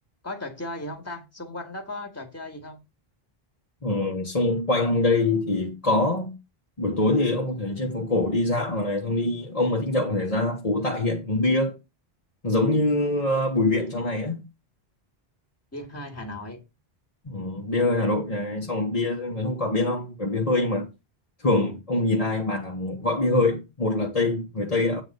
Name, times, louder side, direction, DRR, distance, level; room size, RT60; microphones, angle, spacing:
voice 1, 0.2-2.8 15.7-16.6, left 1 dB, 15° left, 1.9 m, -36 dB
voice 2, 3.8-6.4 6.8-11.8 12.4-14.4 17.2-20.9 21.4-25.0, left 2 dB, 35° left, 1.4 m, -24 dB
8.9 x 4.0 x 6.7 m
omnidirectional pair, 1.0 m